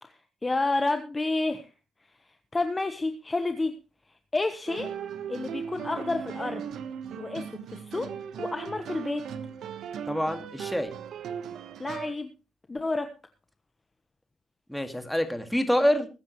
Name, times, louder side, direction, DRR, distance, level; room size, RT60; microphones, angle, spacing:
voice 1, 0.0-1.7 2.5-3.7 4.3-4.9 5.3-6.6 7.2-8.1 8.4-9.2 11.8-12.3 12.7-13.1, left 2 dB, 20° left, 8 dB, 1.2 m, -30 dB
sound 1, 4.7-12.2, right 7 dB, 70° right, 1.3 m, -38 dB
voice 2, 10.1-10.9 14.7-16.1, equal, 5° left, 7 dB, 2.1 m, -26 dB
21.0 x 9.7 x 3.2 m, 0.30 s
cardioid pair, 105°, 0 cm